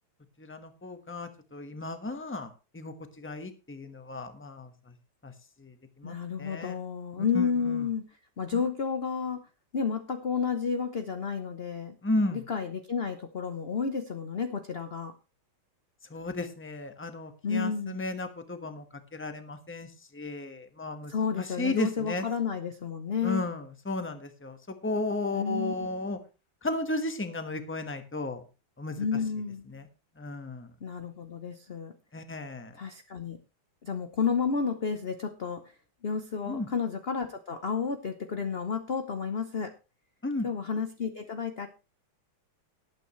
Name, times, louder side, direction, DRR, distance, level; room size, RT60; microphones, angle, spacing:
voice 1, 0.4-4.7 5.2-5.3 5.6-6.1 6.4-6.7 7.3-7.8 8.5-8.6 12.0-12.4 16.1-18.8 19.1-21.1 21.4-22.3 23.2-26.2 26.6-28.4 28.8-29.0 29.7-29.9 30.2-30.7 32.1-32.7 36.5-36.7 40.2-40.5, left 2 dB, 10° left, 8 dB, 1.0 m, -34 dB
voice 2, 6.0-8.0 8.4-9.4 9.7-11.9 12.3-15.1 17.4-18.1 21.1-23.4 25.3-25.7 29.0-29.6 30.8-31.9 32.7-33.4 33.8-35.6 36.0-39.7 40.4-41.7, left 6 dB, 50° left, 8 dB, 0.7 m, -31 dB
18.5 x 9.0 x 3.2 m, 0.30 s
omnidirectional pair, 2.3 m